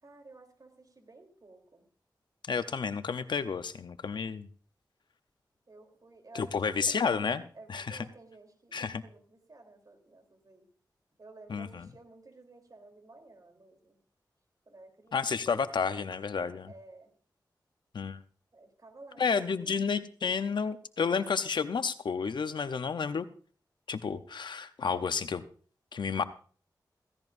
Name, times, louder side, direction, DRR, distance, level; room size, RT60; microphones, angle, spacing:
voice 1, 0.0-1.9 5.7-6.5 6.7-7.0 7.5-10.7 11.2-14.0 14.7-15.3 16.7-17.1 18.5-19.7, right 3 dB, 55° right, 4 dB, 3.5 m, -53 dB
voice 2, 2.5-4.5 6.3-8.0 8.7-9.0 11.5-11.9 15.1-16.7 17.9-18.2 19.2-23.3 23.9-25.4 25.9-26.2, left 5 dB, 85° left, 11 dB, 0.8 m, -31 dB
16.0 x 16.0 x 2.6 m, 0.42 s
cardioid pair, 50°, 8 cm